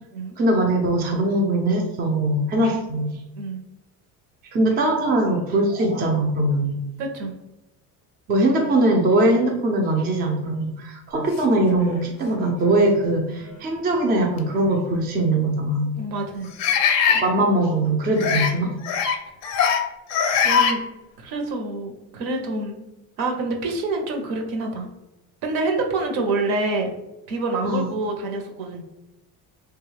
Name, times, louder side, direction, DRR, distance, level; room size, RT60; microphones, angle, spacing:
voice 1, 0.4-3.2 4.5-6.8 8.3-16.0 17.1-18.7 27.6-27.9, right 1 dB, 25° right, 1 dB, 0.4 m, -21 dB
voice 2, 7.0-7.3 16.0-16.5 18.3-18.4 20.3-20.8 21.2-22.8 23.2-24.9 25.4-26.9 27.3-28.8, right 3 dB, 70° right, 3 dB, 0.8 m, -27 dB
sound 1, 11.8-11.9 12.6-12.8 14.4-14.5 16.6-17.2 18.2-18.5 18.8-19.2 19.4-19.8 20.1-20.7, left 7 dB, 45° left, 0.5 m, -20 dB
3.2 x 2.3 x 3.2 m, 0.96 s
cardioid pair, 140°, 38 cm